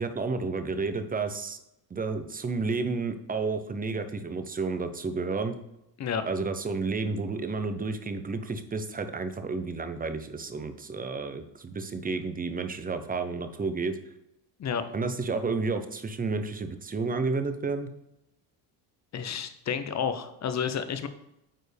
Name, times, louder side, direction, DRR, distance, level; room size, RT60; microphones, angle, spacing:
voice 1, 0.0-1.6 1.9-5.5 6.2-14.0 14.9-17.9, right 4 dB, 20° right, 9 dB, 0.7 m, -31 dB
voice 2, 19.1-21.1, left 7 dB, 40° left, 10 dB, 0.8 m, -30 dB
9.0 x 4.4 x 3.4 m, 0.87 s
cardioid pair, 100°, 45 cm